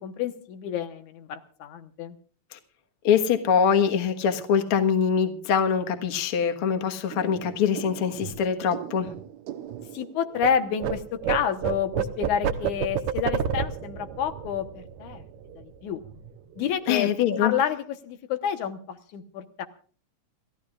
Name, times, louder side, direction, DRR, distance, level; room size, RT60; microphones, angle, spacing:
voice 1, 0.0-2.2 9.9-15.2 15.6-16.0 16.6-17.1 17.4-19.7, left 8 dB, 85° left, 8 dB, 2.6 m, -29 dB
voice 2, 3.0-9.1 16.9-17.5, left 7 dB, 55° left, 5 dB, 2.1 m, -23 dB
sound 1, 7.1-10.5 10.8-15.8 16.0-16.3 16.6-17.1, right 8 dB, 75° right, 2.4 m, -31 dB
28.5 x 14.5 x 2.4 m, 0.41 s
omnidirectional pair, 3.4 m